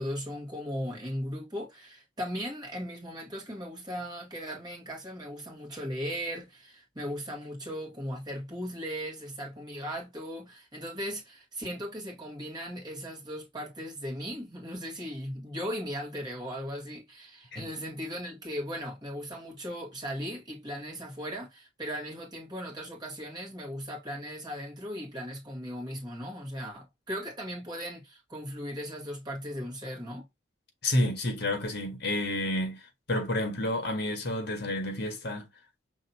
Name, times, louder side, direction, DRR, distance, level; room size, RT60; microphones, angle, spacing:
voice 1, 0.0-30.3, equal, 20° right, 1.8 m, -37 dB
voice 2, 30.8-32.8 33.1-35.5, left 1 dB, 55° left, 1.6 m, -30 dB
5.6 x 3.1 x 2.8 m
head